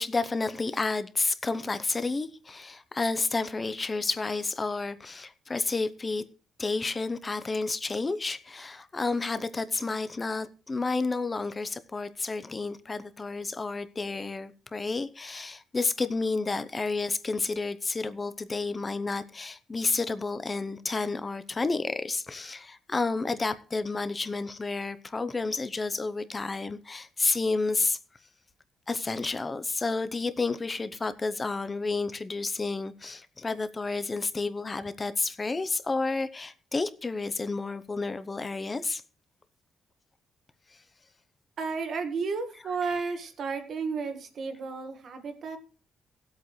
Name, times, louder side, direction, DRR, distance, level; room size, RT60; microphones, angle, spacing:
voice 1, 0.0-6.2 6.6-28.0 28.9-39.0 42.8-42.9, left 3 dB, 20° left, 0.7 m, -30 dB
voice 2, 41.6-45.6, right 4 dB, 50° right, 1.7 m, -32 dB
19.0 x 8.1 x 3.2 m
cardioid pair, 165°, 0 cm